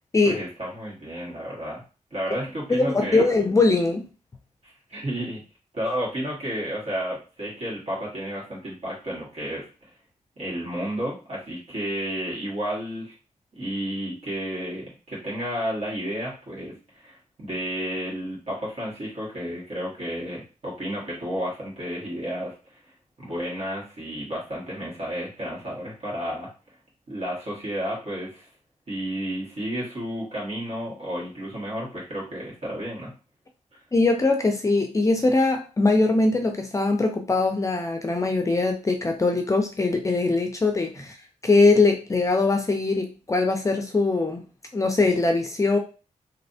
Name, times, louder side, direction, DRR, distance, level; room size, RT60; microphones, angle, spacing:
voice 1, 0.2-1.8 2.1-3.2 4.6-5.4 5.7-9.9 10.4-13.1 13.5-22.5 23.2-26.5 27.1-28.4 28.9-33.1, equal, 55° right, -5 dB, 1.8 m, -32 dB
voice 2, 2.8-4.0 33.9-41.2 41.4-44.4 44.7-45.8, left 3 dB, 25° left, 3 dB, 0.4 m, -21 dB
3.2 x 2.6 x 2.7 m, 0.34 s
wide cardioid pair, 120°, 13 cm